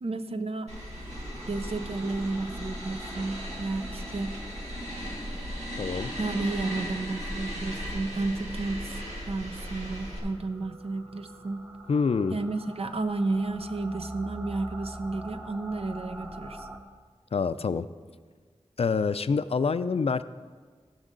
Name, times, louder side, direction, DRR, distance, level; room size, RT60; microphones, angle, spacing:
voice 1, 0.0-0.7 1.5-4.4 6.2-11.6 12.3-16.7, right 3 dB, 60° right, 9 dB, 0.6 m, -32 dB
sound 1, 0.7-10.2, equal, 80° right, 2.2 m, -37 dB
sound 2, 1.2-16.8, right 1 dB, 10° right, 0.9 m, -46 dB
voice 2, 5.8-6.1 11.9-12.4 17.3-17.9 18.8-20.2, left 5 dB, 60° left, 13 dB, 0.4 m, -26 dB
15.0 x 6.3 x 3.8 m, 1.5 s
wide cardioid pair, 65°, 11 cm